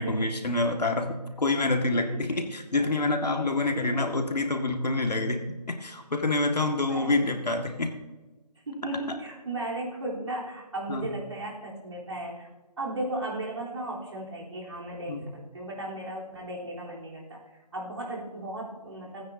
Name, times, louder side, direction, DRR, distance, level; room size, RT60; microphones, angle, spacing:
voice 1, 0.0-7.9 10.9-11.1 15.1-15.3, left 2 dB, 85° left, 4 dB, 2.0 m, -27 dB
voice 2, 1.9-2.5 2.8-4.1 6.8-7.2 8.7-12.5 12.8-17.4 17.7-19.2, right 1 dB, 45° right, -4 dB, 3.7 m, -36 dB
27.0 x 9.4 x 2.8 m, 1.2 s
figure-of-eight pair, 175°, 21 cm